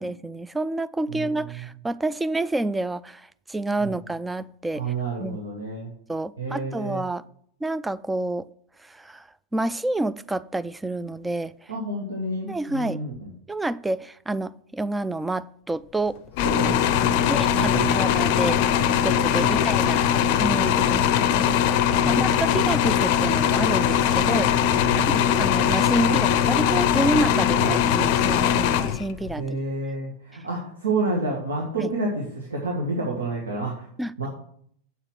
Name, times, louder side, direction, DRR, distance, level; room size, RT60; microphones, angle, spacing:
voice 1, 0.0-4.9 5.2-5.4 6.1-7.2 7.6-8.5 8.8-9.3 9.5-11.7 12.5-13.0 13.5-16.2 17.3-18.6 19.0-20.0 20.4-21.1 21.3-21.6 22.1-24.5 25.1-29.6 31.8-31.9 34.0-34.3, right 2 dB, 10° right, 16 dB, 0.4 m, -28 dB
voice 2, 4.8-5.9 6.4-7.0 11.7-13.3 16.4-17.1 17.6-18.4 19.4-19.5 19.9-20.6 22.0-22.3 24.2-24.4 24.8-25.1 26.1-26.2 27.4-27.8 29.4-33.9 34.2-34.3, right 2 dB, 70° right, -1 dB, 1.9 m, -30 dB
sound 1, 16.4-29.4, left 9 dB, 45° left, 0.6 m, -21 dB
8.0 x 7.4 x 6.2 m, 0.64 s
figure-of-eight pair, 90°, 0 cm